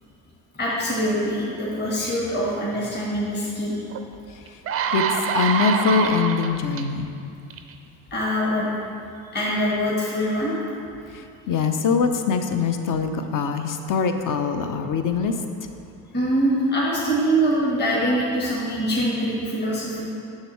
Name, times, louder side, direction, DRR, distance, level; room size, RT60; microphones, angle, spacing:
voice 1, 0.5-3.8 8.1-8.7 9.3-10.6 16.1-20.1, equal, 20° left, -5 dB, 1.5 m, -24 dB
sound 1, 3.9-4.0 4.5-6.8 7.5-7.7, right 7 dB, 30° right, 0.4 m, -25 dB
voice 2, 4.9-7.1 11.1-15.3, left 5 dB, 45° left, 7 dB, 0.6 m, -23 dB
6.5 x 6.5 x 3.1 m, 2.5 s
hypercardioid pair, 60°, 47 cm